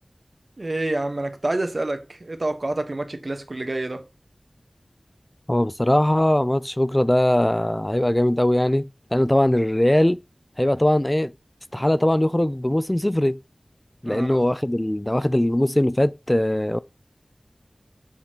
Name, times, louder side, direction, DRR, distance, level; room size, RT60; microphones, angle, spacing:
voice 1, 0.6-4.1 14.0-14.4, right 2 dB, 55° right, 1.2 m, -28 dB
voice 2, 5.5-10.2 10.6-11.3 11.7-13.4 14.0-16.8, left 1 dB, 20° left, 0.3 m, -20 dB
7.3 x 6.9 x 2.9 m
wide cardioid pair, 45°, 0 cm